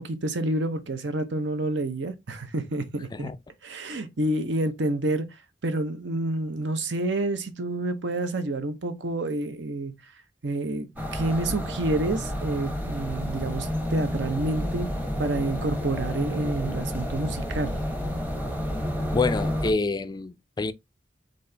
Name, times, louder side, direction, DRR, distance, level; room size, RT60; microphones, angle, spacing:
voice 1, 0.0-3.3 3.6-5.3 5.6-9.9 10.4-14.9 15.2-17.8, right 2 dB, 75° right, 0.8 m, -28 dB
sound 1, 11.0-19.7, equal, 10° right, 0.9 m, -30 dB
voice 2, 19.1-20.7, left 3 dB, 25° left, 0.3 m, -27 dB
4.1 x 3.8 x 3.3 m
head